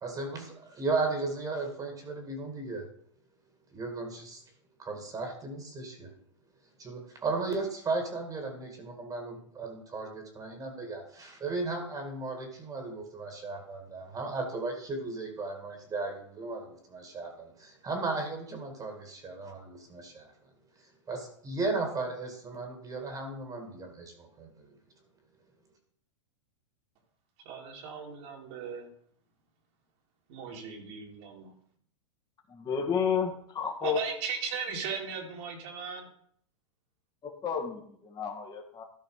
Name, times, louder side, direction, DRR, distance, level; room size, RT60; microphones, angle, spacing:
voice 1, 0.0-2.9 3.7-4.4 4.8-6.1 6.8-20.3 21.1-24.7, right 3 dB, 20° right, 4 dB, 2.1 m, -35 dB
voice 2, 27.4-28.9 30.3-31.5 33.8-36.1, right 6 dB, 55° right, 0 dB, 2.6 m, -37 dB
voice 3, 32.5-34.0 37.2-38.8, left 7 dB, 25° left, 1 dB, 1.8 m, -31 dB
13.0 x 5.2 x 4.8 m, 0.62 s
hypercardioid pair, 115°, 16 cm